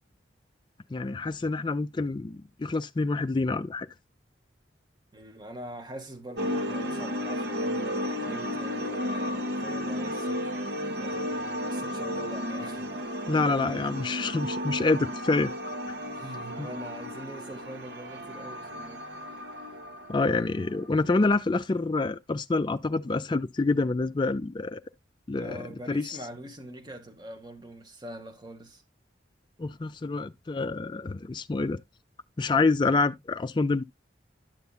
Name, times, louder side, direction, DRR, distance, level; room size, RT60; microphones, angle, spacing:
voice 1, 0.9-3.9 13.3-15.5 16.6-16.7 20.1-24.8 25.3-26.2 29.6-31.8 32.4-33.8, left 3 dB, 25° left, 0.3 m, -27 dB
voice 2, 5.1-10.6 11.0-13.0 16.1-19.0 25.4-28.8, right 1 dB, 25° right, 1.0 m, -43 dB
sound 1, 6.4-21.0, equal, 65° right, 0.8 m, -33 dB
10.5 x 6.8 x 2.3 m
head